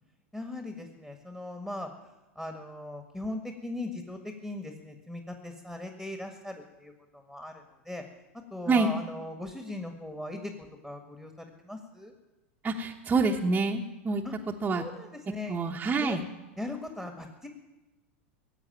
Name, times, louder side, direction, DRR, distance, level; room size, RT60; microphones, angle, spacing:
voice 1, 0.3-8.0 8.5-12.1 14.2-14.3 14.7-15.6 16.0-16.3 16.6-17.5, left 2 dB, 5° left, 5 dB, 1.8 m, -39 dB
voice 2, 12.6-14.2 14.6-14.8 15.5-16.2, right 3 dB, 20° right, -1 dB, 1.1 m, -27 dB
16.5 x 8.1 x 9.3 m, 1.1 s
hypercardioid pair, 95°, 7 cm